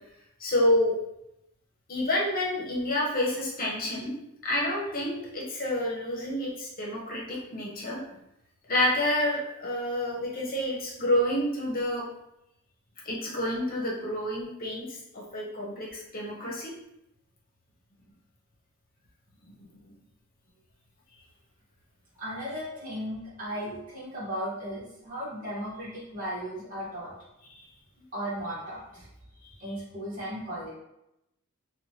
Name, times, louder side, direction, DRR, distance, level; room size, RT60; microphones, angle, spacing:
voice 1, 0.4-1.0 1.9-4.2 4.4-8.0 8.7-12.1 13.0-16.7 19.5-19.9 27.5-27.6 29.4-29.5, left 1 dB, 45° left, -3 dB, 0.8 m, -29 dB
voice 2, 22.2-27.1 28.1-29.1 29.6-30.7, equal, 40° right, -9 dB, 1.2 m, -36 dB
3.0 x 2.2 x 2.8 m, 0.85 s
head